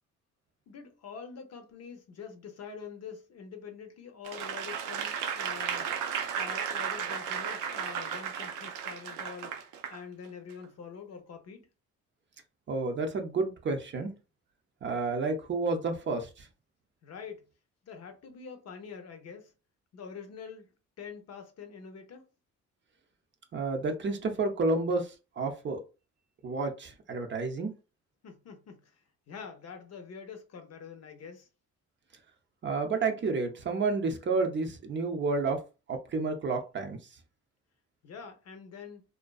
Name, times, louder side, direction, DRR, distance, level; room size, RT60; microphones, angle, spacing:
voice 1, 0.7-5.9 6.3-9.5 9.9-11.7 17.0-17.5 17.8-19.5 19.9-20.7 21.0-22.3 28.2-31.5 38.0-39.0, left 6 dB, 55° left, 0.6 m, -45 dB
Applause / Crowd, 4.2-10.0 10.5-10.6, right 7 dB, 85° right, 0.5 m, -34 dB
voice 2, 12.7-14.1 14.8-16.5 23.5-25.8 26.4-27.7 32.6-35.6 35.9-37.0, right 3 dB, 40° right, 0.5 m, -30 dB
2.5 x 2.2 x 2.3 m
cardioid pair, 90°, 30 cm